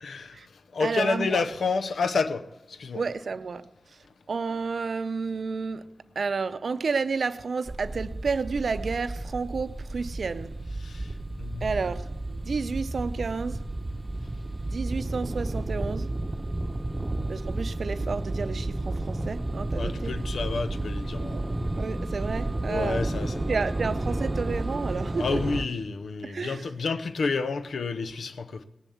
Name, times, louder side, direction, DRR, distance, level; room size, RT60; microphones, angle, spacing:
voice 1, 0.0-0.4 0.7-2.4 2.7-3.0 10.8-11.1 11.4-11.7 19.7-21.4 22.7-23.6 25.2-28.6, left 4 dB, 85° left, 0.7 m, -29 dB
voice 2, 0.8-1.5 2.9-3.6 4.3-5.8 6.2-10.6 11.6-13.6 14.6-16.1 17.3-20.2 21.1-21.4 21.8-23.1 23.5-25.4 26.2-26.7, right 4 dB, 75° right, 0.6 m, -31 dB
sound 1, 7.7-25.6, right 2 dB, 35° right, 0.8 m, -32 dB
18.0 x 7.2 x 7.0 m
cardioid pair, 40°, 0 cm